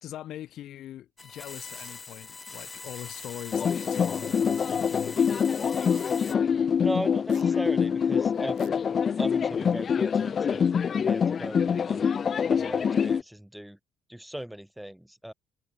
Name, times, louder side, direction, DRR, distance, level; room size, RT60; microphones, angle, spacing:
voice 1, 0.0-5.4, left 12 dB, 60° left, 1.5 m, -42 dB
sound 1, 1.2-6.3, left 4 dB, 30° left, 2.8 m, -42 dB
sound 2, 1.7-1.9 3.1-3.3 4.5-4.7 5.9-6.1 7.3-7.4 8.6-8.7, right 15 dB, 65° right, 6.2 m, -52 dB
sound 3, 3.5-13.2, left 7 dB, 45° left, 0.4 m, -25 dB
voice 2, 6.8-8.6 9.2-12.2 12.5-13.8 14.1-15.3, equal, 5° right, 2.4 m, -38 dB
hypercardioid pair, 50°, 0 cm